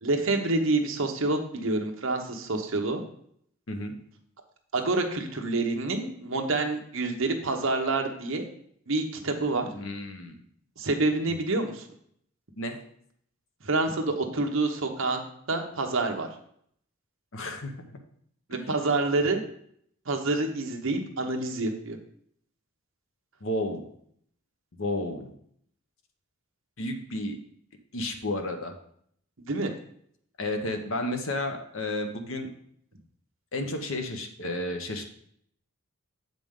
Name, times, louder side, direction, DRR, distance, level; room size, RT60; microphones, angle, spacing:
voice 1, 0.0-3.0 4.7-8.5 8.9-9.7 10.8-11.9 13.6-15.2 15.5-16.3 18.5-19.4 20.1-22.0 29.4-29.7, right 2 dB, 60° right, 3 dB, 0.9 m, -27 dB
voice 2, 9.7-10.4 11.2-11.3 12.6-12.8 17.3-17.7 23.4-23.8 24.8-25.3 26.8-27.4 27.9-28.8 30.4-32.5 33.5-35.0, left 1 dB, 60° left, 5 dB, 0.9 m, -32 dB
7.5 x 5.2 x 3.7 m, 0.67 s
head